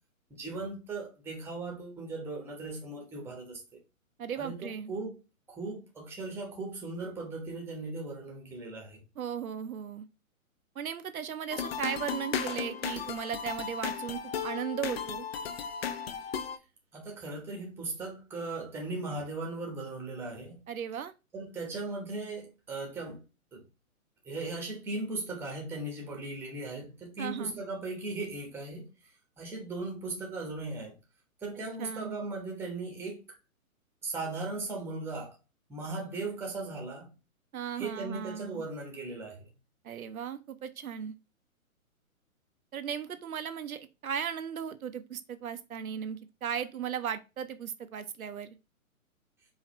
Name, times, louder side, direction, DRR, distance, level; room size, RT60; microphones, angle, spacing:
voice 1, 0.3-3.8 4.4-5.1 5.5-9.0 16.9-20.6 21.3-23.2 23.5-23.6 24.2-28.9 29.4-31.0 31.4-33.2 34.0-35.4 35.7-37.1 37.8-39.5, right 3 dB, 5° right, 1.0 m, -38 dB
voice 2, 4.2-4.9 9.2-10.1 10.8-15.3 20.7-21.1 27.2-27.6 31.8-32.2 37.5-38.6 39.8-41.1 42.7-48.6, right 8 dB, 75° right, 0.7 m, -36 dB
sound 1, 11.5-16.6, left 7 dB, 45° left, 0.6 m, -35 dB
4.8 x 2.8 x 2.9 m
figure-of-eight pair, 130°, 43 cm